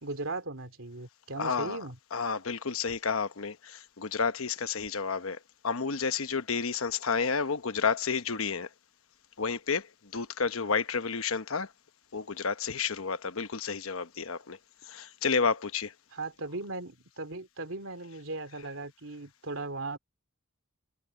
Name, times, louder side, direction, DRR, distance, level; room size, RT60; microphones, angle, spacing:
voice 1, 0.0-2.0 16.1-20.0, right 3 dB, 70° right, 2.8 m, -38 dB
voice 2, 1.4-1.8 2.1-5.4 5.6-8.7 9.4-11.7 12.1-14.6 14.8-15.9, left 5 dB, 80° left, 1.1 m, -31 dB
head